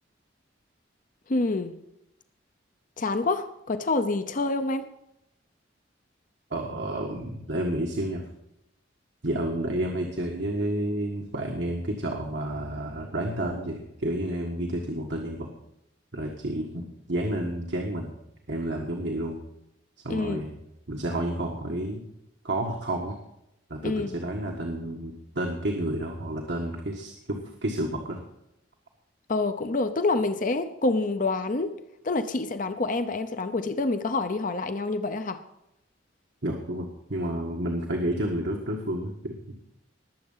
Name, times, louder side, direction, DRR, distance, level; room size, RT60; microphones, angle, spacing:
voice 1, 1.3-1.7 3.0-4.9 20.1-20.4 23.8-24.1 29.3-31.8 32.0-35.4, left 3 dB, 45° left, 9 dB, 0.7 m, -27 dB
voice 2, 6.5-8.2 9.2-15.5 16.1-18.1 18.5-19.4 20.0-20.6 20.9-22.1 22.4-23.2 23.7-28.2 36.4-39.6, right 1 dB, 70° right, 0 dB, 1.6 m, -30 dB
20.0 x 7.7 x 5.6 m, 0.84 s
head